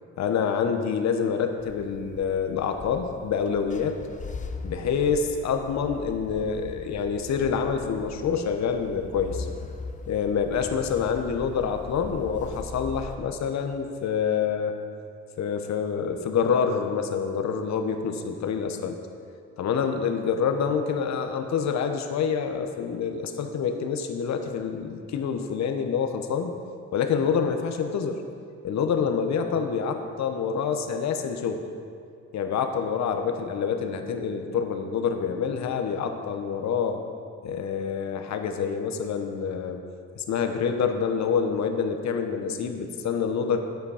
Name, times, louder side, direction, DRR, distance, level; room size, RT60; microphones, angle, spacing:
voice 1, 0.2-4.0 4.6-9.5 10.1-14.7 15.4-19.0 19.6-26.5 26.9-28.2 28.6-31.6 32.3-37.0 37.4-39.8 40.2-43.6, left 6 dB, 65° left, 6 dB, 1.0 m, -27 dB
sound 1, 1.6-13.2, left 4 dB, 25° left, 0.6 m, -40 dB
9.2 x 8.1 x 4.9 m, 2.4 s
cardioid pair, 90°, 30 cm